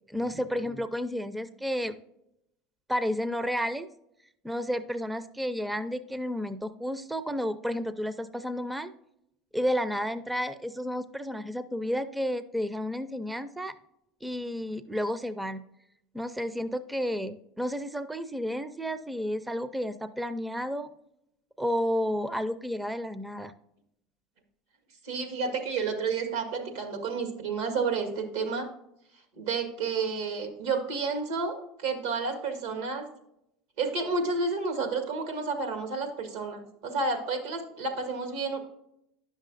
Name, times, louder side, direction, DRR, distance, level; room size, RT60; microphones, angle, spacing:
voice 1, 0.1-2.0 2.9-3.9 4.4-8.9 9.5-13.7 14.2-15.6 16.1-20.9 21.6-23.5, equal, 5° right, 12 dB, 0.4 m, -31 dB
voice 2, 25.0-28.7 29.4-33.0 33.8-38.6, right 4 dB, 80° right, 5 dB, 1.7 m, -30 dB
10.5 x 6.4 x 2.6 m, 0.79 s
supercardioid pair, 100°, 0 cm